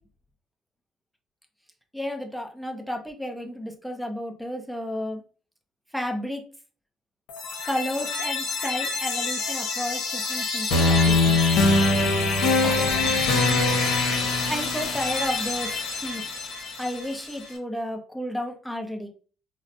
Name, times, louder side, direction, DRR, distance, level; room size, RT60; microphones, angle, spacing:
voice 1, 1.9-5.2 5.9-6.4 7.6-11.4 12.6-13.2 14.5-15.7 16.0-16.2 16.8-19.1, equal, ahead, 2 dB, 0.7 m, -32 dB
sound 1, 7.3-17.2, left 3 dB, 75° left, 0.8 m, -24 dB
3.9 x 2.1 x 2.5 m, 0.39 s
supercardioid pair, 80°, 0 cm